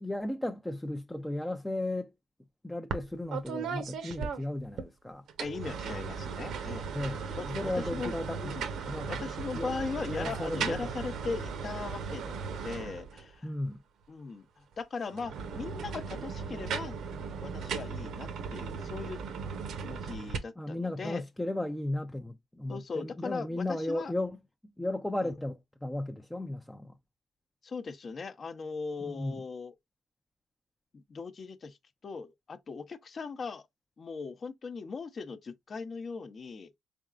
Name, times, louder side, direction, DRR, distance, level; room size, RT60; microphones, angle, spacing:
voice 1, 0.0-2.1 2.6-5.2 6.9-8.5 8.9-9.3 9.5-9.7 10.0-10.9 13.4-13.8 20.6-24.4 24.8-26.9 29.0-29.4, left 1 dB, 5° left, 0.5 m, -35 dB
sound 1, 2.9-3.1 3.3-4.9 5.3-13.3 15.1-20.4, right 6 dB, 75° right, 0.9 m, -37 dB
voice 2, 5.4-8.7 9.1-13.5 14.1-17.0 17.4-19.2 19.8-21.2 22.7-24.1 25.2-25.3 27.6-29.7 30.9-31.8 32.0-33.6 34.0-36.7, left 4 dB, 45° left, 0.7 m, -39 dB
4.0 x 3.5 x 2.3 m
cardioid pair, 90°, 0 cm